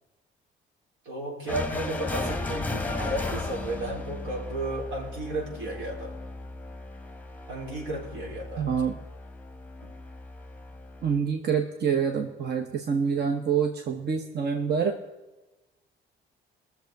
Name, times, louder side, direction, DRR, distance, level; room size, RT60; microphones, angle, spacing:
voice 1, 1.1-6.2 7.5-8.7 9.8-9.9, right 1 dB, 85° right, -2 dB, 4.1 m, -33 dB
sound 1, 1.5-11.2, left 2 dB, 10° left, 1.0 m, -36 dB
voice 2, 8.6-9.0 11.0-14.9, right 6 dB, 55° right, 4 dB, 1.1 m, -26 dB
20.5 x 7.1 x 4.7 m, 1.1 s
cardioid pair, 90°, 20 cm